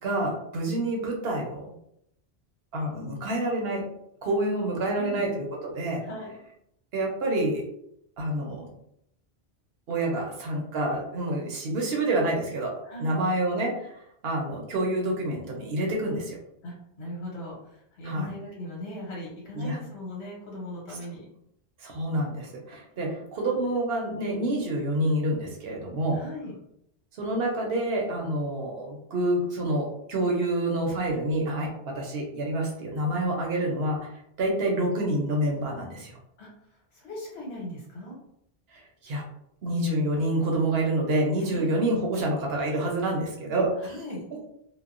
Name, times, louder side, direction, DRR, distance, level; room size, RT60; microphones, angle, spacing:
voice 1, 0.0-1.7 2.7-3.9 4.2-6.0 6.9-7.6 8.2-8.7 9.9-12.7 13.0-13.9 14.2-16.4 18.0-18.3 19.5-19.8 20.9-21.0 21.8-26.2 27.2-34.1 34.4-36.2 38.7-39.3 39.6-44.4, right 1 dB, 70° right, 1 dB, 0.9 m, -28 dB
voice 2, 4.8-5.3 6.0-6.4 12.8-13.1 16.6-21.2 23.0-23.2 26.1-26.5 36.4-36.5 36.9-38.1 41.5-41.7 43.8-44.2, left 1 dB, 75° left, -4 dB, 1.3 m, -39 dB
2.8 x 2.1 x 2.4 m, 0.75 s
omnidirectional pair, 1.1 m